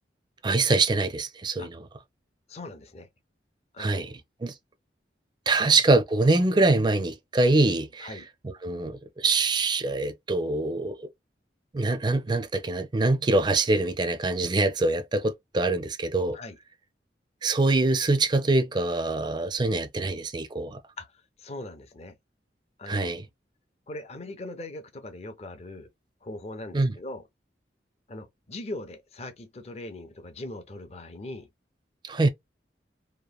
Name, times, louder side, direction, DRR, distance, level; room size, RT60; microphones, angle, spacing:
voice 1, 0.4-1.8 3.8-4.1 4.4-4.5 5.5-8.1 8.4-11.1 11.7-16.4 17.4-20.8 22.9-23.2 26.7-27.0 32.0-32.3, right 2 dB, 25° right, 0.4 m, -24 dB
voice 2, 2.5-3.1 3.7-4.1 5.6-5.7 8.0-8.3 16.3-16.6 21.0-22.2 22.8-23.1 23.9-25.9 26.2-27.2 28.1-31.5, left 2 dB, 35° left, 0.6 m, -40 dB
2.9 x 2.1 x 2.3 m
head